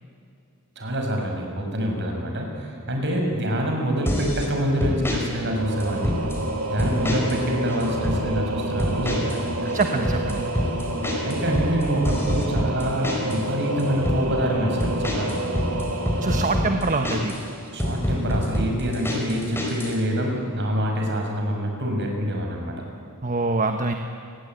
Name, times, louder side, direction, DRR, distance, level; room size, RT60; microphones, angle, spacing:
voice 1, 0.8-6.2 6.7-10.0 11.0-15.4 17.7-22.8, equal, 55° right, 2 dB, 6.4 m, -26 dB
sound 1, 4.1-4.5 4.8-5.2 5.8-6.4 6.8-7.4 7.7-8.2 8.8-9.4 9.7-13.4 13.8-14.2 14.8-17.4 17.8-20.0, left 1 dB, 10° left, 5.0 m, -26 dB
Singing / Musical instrument, 5.5-18.0, right 1 dB, 75° right, 3.3 m, -29 dB
voice 2, 9.7-10.5 16.2-17.3 23.2-23.9, right 3 dB, 35° right, 5 dB, 1.3 m, -24 dB
29.5 x 20.0 x 9.4 m, 2.5 s
head